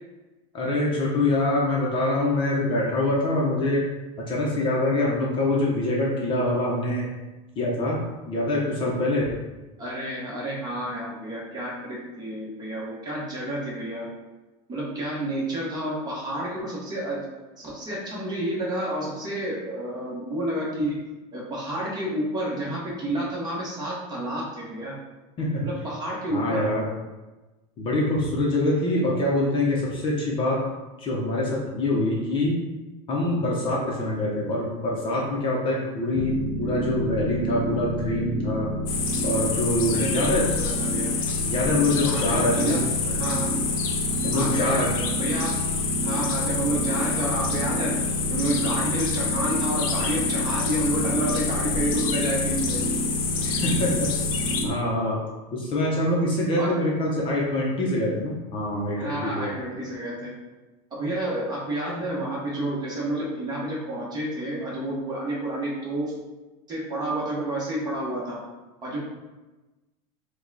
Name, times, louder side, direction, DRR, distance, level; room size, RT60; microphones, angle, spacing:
voice 1, 0.5-3.8 4.2-7.1 7.6-9.3 25.4-25.7 26.3-26.8 27.8-30.6 31.0-32.6 33.1-38.7 39.2-40.5 41.5-42.8 44.2-44.9 53.4-54.1 54.6-55.2 55.5-59.5, left 1 dB, 30° left, -3 dB, 0.8 m, -25 dB
voice 2, 9.8-14.1 14.7-17.3 17.6-21.0 21.3-25.0 25.6-26.7 39.9-40.3 40.6-41.1 41.9-43.5 44.3-44.9 45.1-45.6 46.0-48.0 48.3-52.8 56.6-56.8 58.9-60.3 60.9-66.1 66.7-68.4 68.8-69.0, right 1 dB, 20° right, -5 dB, 1.3 m, -30 dB
sound 1, 36.1-54.7, equal, 55° right, 1.4 m, -29 dB
sound 2, 38.9-54.6, left 6 dB, 75° left, 0.8 m, -28 dB
5.0 x 2.4 x 4.0 m, 1.1 s
supercardioid pair, 155°, 18 cm